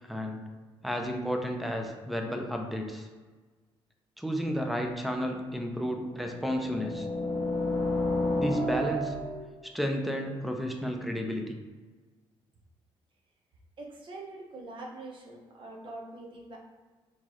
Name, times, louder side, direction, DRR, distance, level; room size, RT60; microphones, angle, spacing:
voice 1, 0.0-0.4 0.8-3.1 4.2-7.1 8.4-9.2 9.6-11.6, equal, ahead, 3 dB, 0.6 m, -32 dB
sound 1, 6.1-9.6, left 1 dB, 70° left, 0.8 m, -30 dB
voice 2, 13.8-16.6, right 2 dB, 55° right, -1 dB, 0.9 m, -44 dB
4.3 x 3.2 x 3.0 m, 1.3 s
cardioid pair, 105°, 10 cm